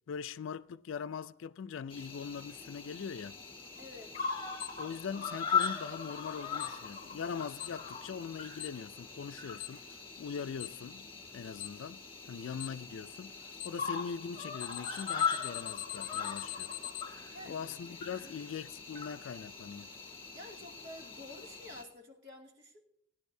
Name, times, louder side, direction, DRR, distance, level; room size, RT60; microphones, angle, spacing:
voice 1, 0.1-3.4 4.8-9.8 10.2-12.0 12.3-13.3 13.6-16.7 17.5-19.9, left 6 dB, 75° left, 0.4 m, -41 dB
Cricket, 1.9-21.8, left 6 dB, 25° left, 1.5 m, -40 dB
voice 2, 3.8-4.1 17.3-17.6 18.1-18.4 20.3-22.8, left 1 dB, 60° right, 2.4 m, -50 dB
Alarm, 4.6-4.7 5.6-5.7 6.6-6.7 7.6-7.7 8.6-8.7 9.6-9.7 10.6-10.7 11.6-11.7 12.6-12.7 13.6-13.7 14.6-17.0, left 17 dB, 50° left, 0.7 m, -40 dB
17.0 x 10.5 x 2.7 m
head